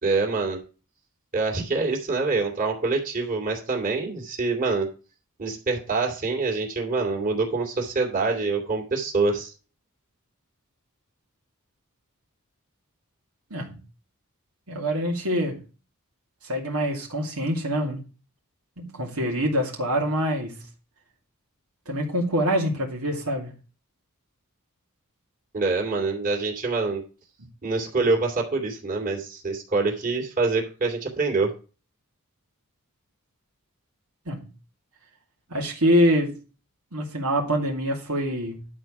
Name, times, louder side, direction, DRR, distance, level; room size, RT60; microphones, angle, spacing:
voice 1, 0.0-0.6 1.3-4.9 5.4-9.5 25.5-27.0 27.6-31.5, right 3 dB, 40° right, 2.7 m, -25 dB
voice 2, 14.7-15.6 16.4-18.0 18.8-20.6 21.9-23.5 34.3-34.5 35.5-36.3 36.9-38.7, equal, 80° right, 2.4 m, -25 dB
11.0 x 4.5 x 6.0 m
head